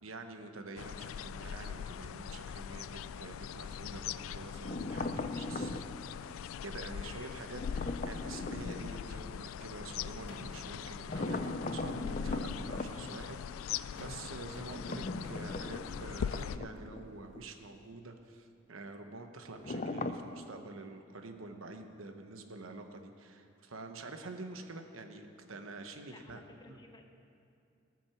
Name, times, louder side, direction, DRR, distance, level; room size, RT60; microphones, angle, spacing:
voice 1, 0.0-5.8 6.2-26.4 26.7-26.8, right 3 dB, 85° right, 6 dB, 1.0 m, -47 dB
sound 1, 0.8-16.6, left 8 dB, 85° left, 0.3 m, -41 dB
sound 2, 4.6-6.0 7.5-9.0 11.1-12.9 14.7-17.1 17.4-17.5 19.6-20.4, left 2 dB, 40° left, 0.5 m, -38 dB
voice 2, 7.0-7.4 25.8-27.0, left 2 dB, 20° left, 4 dB, 0.9 m, -55 dB
sound 3, 10.3-10.8 12.3-13.2 14.0-14.3 14.5-15.3 16.0-16.8, left 1 dB, 60° left, 1.4 m, -51 dB
18.0 x 6.2 x 7.0 m, 2.6 s
head